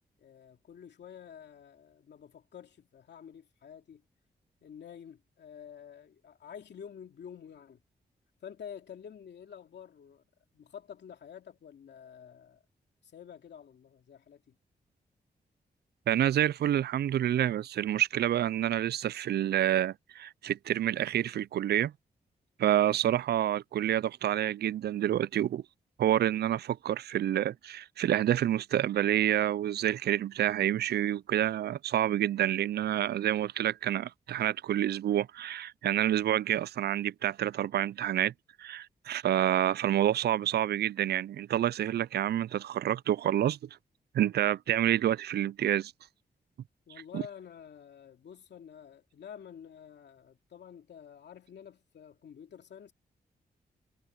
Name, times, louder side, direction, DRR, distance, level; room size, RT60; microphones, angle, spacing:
voice 1, 0.2-4.0 4.6-7.8 8.4-10.2 10.5-12.6 13.0-14.6 46.9-52.9, left 8 dB, 80° left, 2.6 m, -49 dB
voice 2, 16.1-21.9 22.6-25.6 26.0-38.3 38.6-43.6 44.1-45.9 47.1-47.2, right 11 dB, 70° right, 0.4 m, -28 dB
cardioid pair, 50°, 18 cm